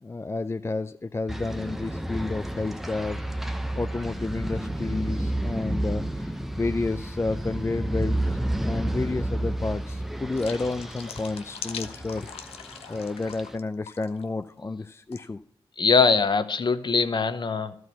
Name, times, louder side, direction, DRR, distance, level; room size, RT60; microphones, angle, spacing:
voice 1, 0.0-3.2 3.8-12.3 12.9-15.4, left 3 dB, 25° left, 9 dB, 0.5 m, -31 dB
sound 1, 1.3-13.6, right 1 dB, 5° right, 0.8 m, -31 dB
sound 2, 10.3-13.6 13.9-14.2 15.1-15.3, left 7 dB, 80° left, 0.7 m, -41 dB
voice 2, 15.8-17.8, left 5 dB, 50° left, 11 dB, 0.9 m, -22 dB
12.5 x 4.7 x 8.3 m, 0.62 s
supercardioid pair, 40°, 10 cm